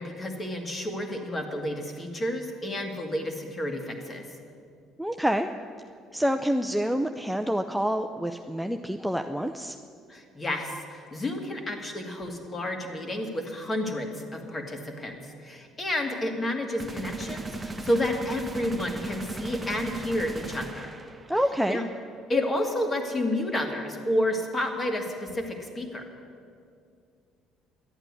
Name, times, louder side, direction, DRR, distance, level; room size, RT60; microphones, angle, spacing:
voice 1, 0.0-4.3 10.1-15.2 15.4-20.9 21.7-21.8 22.3-26.0, left 1 dB, 30° left, 3 dB, 2.3 m, -30 dB
voice 2, 5.0-5.5 6.1-9.8 21.3-21.8, equal, ahead, 5 dB, 0.6 m, -27 dB
sound 1, 16.8-21.5, right 3 dB, 20° right, 1.1 m, -37 dB
12.0 x 9.0 x 9.6 m, 2.3 s
supercardioid pair, 70°, 0 cm